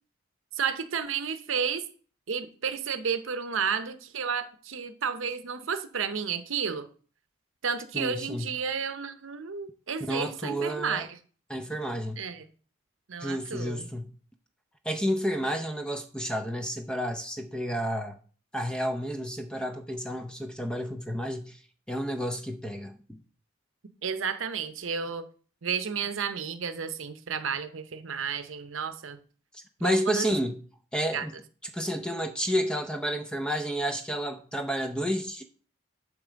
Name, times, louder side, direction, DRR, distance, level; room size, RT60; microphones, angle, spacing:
voice 1, 0.5-1.8 2.3-6.9 7.6-11.1 12.2-12.4 13.1-13.9 24.0-25.2 25.6-29.2 29.8-30.3 31.1-31.3, right 6 dB, 80° right, 0.7 m, -32 dB
voice 2, 7.9-8.5 10.0-11.1 11.5-12.2 13.2-14.1 14.8-18.2 18.5-21.6 21.9-23.2 29.5-30.6 30.9-31.3 31.7-35.4, equal, 5° left, 0.6 m, -30 dB
8.4 x 3.3 x 6.2 m
head